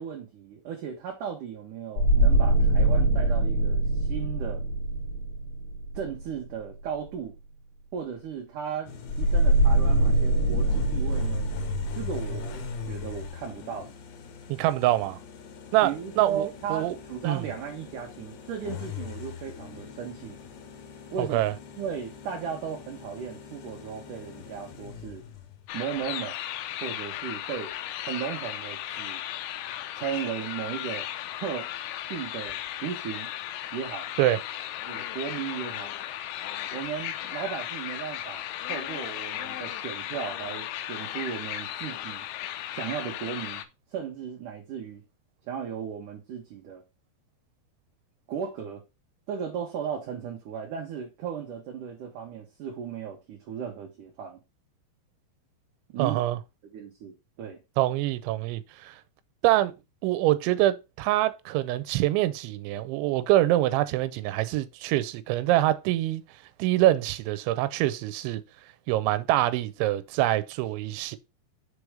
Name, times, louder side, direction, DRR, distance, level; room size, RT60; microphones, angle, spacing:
voice 1, 0.0-4.6 5.9-7.3 7.9-11.5 11.9-13.9 15.8-20.4 21.1-21.4 21.8-25.2 25.7-26.4 26.8-27.7 28.0-29.2 29.9-31.1 31.4-31.7 32.1-33.3 33.7-34.1 34.9-35.9 36.7-42.2 42.7-43.6 43.9-45.0 45.5-46.8 48.3-48.8 49.3-54.4 55.9-56.2 56.7-57.6, right 7 dB, 70° right, 2.1 m, -36 dB
sound 1, 2.0-6.4 9.1-13.2, right 2 dB, 40° left, 2.2 m, -24 dB
sound 2, 8.9-25.7, left 8 dB, 75° left, 3.2 m, -42 dB
voice 2, 14.5-15.2 15.7-17.0 17.2-17.4 21.2-21.5 34.2-34.4 56.0-56.4 57.8-59.0 59.4-59.7 60.0-66.2 66.6-68.4 68.9-71.2, right 15 dB, 85° right, 3.0 m, -25 dB
sound 3, 25.7-43.7, left 12 dB, 90° left, 3.1 m, -36 dB
6.9 x 4.8 x 4.9 m
omnidirectional pair, 5.2 m